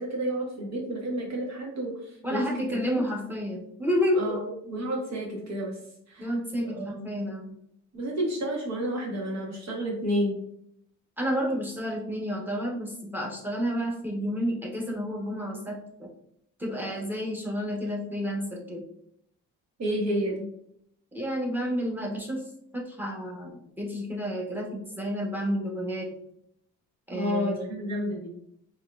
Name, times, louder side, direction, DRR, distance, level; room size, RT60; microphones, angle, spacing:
voice 1, 0.0-2.8 4.1-5.8 6.1-6.3 6.6-7.0 7.9-10.4 19.8-20.5 27.1-28.3, equal, 60° right, -2 dB, 1.5 m, -30 dB
voice 2, 2.2-4.4 6.2-7.6 11.2-16.1 16.6-18.8 21.1-22.4 22.7-26.1 27.1-27.7, equal, 5° right, -2 dB, 1.1 m, -30 dB
4.5 x 3.1 x 2.4 m, 0.73 s
cardioid pair, 90°, 30 cm